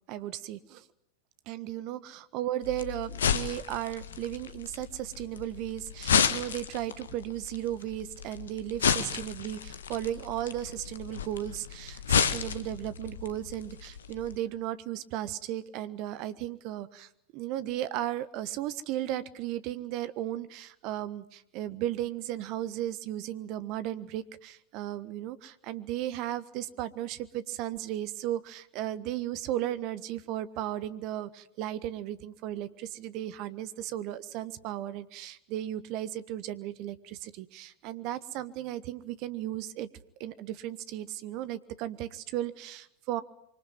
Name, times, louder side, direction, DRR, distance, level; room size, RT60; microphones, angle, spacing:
voice 1, 0.1-0.8 1.5-39.9 40.2-43.2, right 13 dB, 40° right, 15 dB, 1.4 m, -35 dB
sound 1, 2.6-14.4, left 7 dB, 65° left, 1.6 m, -32 dB
25.5 x 25.0 x 9.1 m, 0.74 s
figure-of-eight pair, 90°, 0 cm